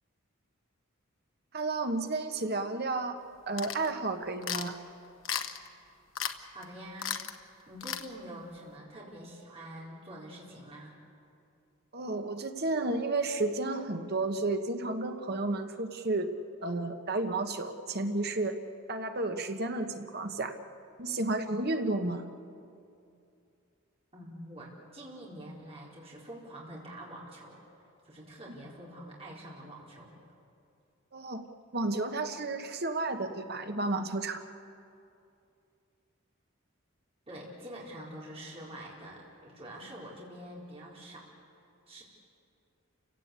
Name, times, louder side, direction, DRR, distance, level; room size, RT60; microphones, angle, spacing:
voice 1, 1.5-4.8 11.9-16.3 16.6-18.6 18.9-20.5 21.0-22.3 31.1-31.4 31.7-34.4, right 2 dB, 50° right, 6 dB, 1.3 m, -32 dB
sound 1, 3.6-3.9 4.4-4.7 5.3-5.7 6.2-6.4 6.6-6.7 7.0-7.4 7.8-8.1, left 8 dB, 75° left, 1.1 m, -34 dB
voice 2, 6.5-7.1 7.7-10.9 24.1-27.6 28.0-30.2 37.3-41.3 41.9-42.0, right 1 dB, 30° right, -5 dB, 4.1 m, -46 dB
29.5 x 17.0 x 8.3 m, 2.5 s
head